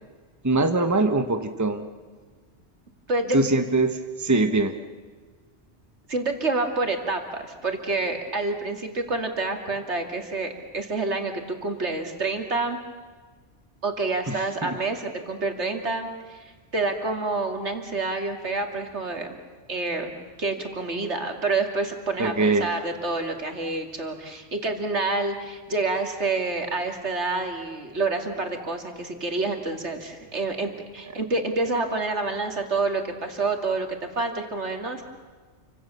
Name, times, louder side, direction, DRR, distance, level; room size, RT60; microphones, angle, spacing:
voice 1, 0.4-1.8 3.3-4.8 14.3-14.4 14.6-14.8 22.2-22.7, right 2 dB, 15° right, 7 dB, 1.2 m, -22 dB
voice 2, 6.1-12.8 13.8-19.4 19.7-20.1 20.4-35.0, right 3 dB, 70° right, 4 dB, 2.8 m, -28 dB
29.0 x 25.0 x 7.0 m, 1.5 s
omnidirectional pair, 1.2 m